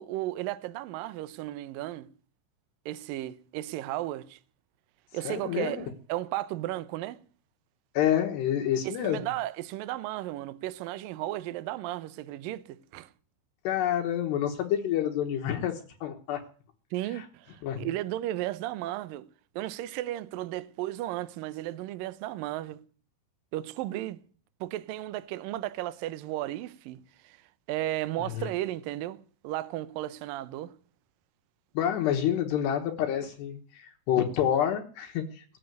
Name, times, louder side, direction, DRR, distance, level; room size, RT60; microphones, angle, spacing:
voice 1, 0.0-2.1 2.9-4.4 5.1-7.2 8.8-13.1 16.9-19.3 19.6-22.8 23.5-24.2 24.6-27.0 27.2-27.4 27.7-29.2 29.4-30.7, right 15 dB, 80° right, 2.0 m, -34 dB
voice 2, 5.2-5.8 7.9-9.2 13.6-16.4 17.1-17.2 17.6-17.9 28.2-28.5 31.7-35.4, left 10 dB, 75° left, 3.2 m, -28 dB
18.5 x 8.0 x 9.3 m
omnidirectional pair, 5.1 m